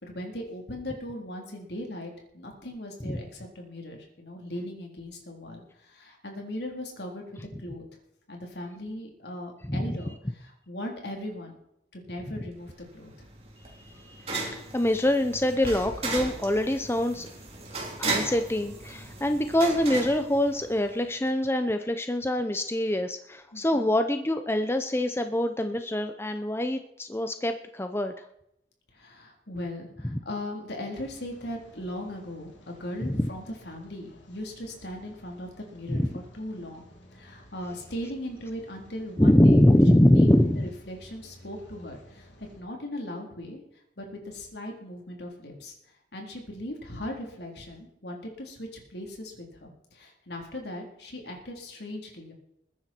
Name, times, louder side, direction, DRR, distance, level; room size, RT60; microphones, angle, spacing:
voice 1, 0.0-7.8 8.3-11.6 11.9-13.3 23.5-23.9 28.9-36.0 36.3-39.7 40.1-42.3 42.6-45.7 46.1-52.3, left 1 dB, 65° left, 1 dB, 3.7 m, -39 dB
sound 1, 12.7-21.0, right 2 dB, 35° right, 3.6 m, -36 dB
voice 2, 13.7-17.3 18.0-28.2 33.0-33.3 35.9-36.1 39.2-40.6, left 1 dB, 15° left, 7 dB, 0.7 m, -24 dB
Rain, 30.9-42.6, equal, 90° left, 3.0 m, -54 dB
21.0 x 10.0 x 4.5 m, 0.80 s
head